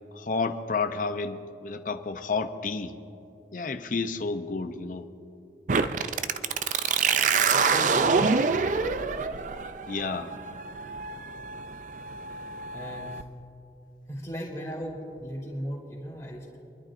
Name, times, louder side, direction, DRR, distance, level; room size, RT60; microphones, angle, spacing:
voice 1, 0.1-2.9 3.5-5.1 9.9-10.3, left 4 dB, 50° left, 8 dB, 0.6 m, -30 dB
sound 1, 5.7-13.2, right 5 dB, 45° right, 0.4 m, -26 dB
voice 2, 7.7-8.6 12.7-13.2 14.1-16.6, equal, 20° left, -5 dB, 3.0 m, -37 dB
26.5 x 11.5 x 2.6 m, 2.8 s
head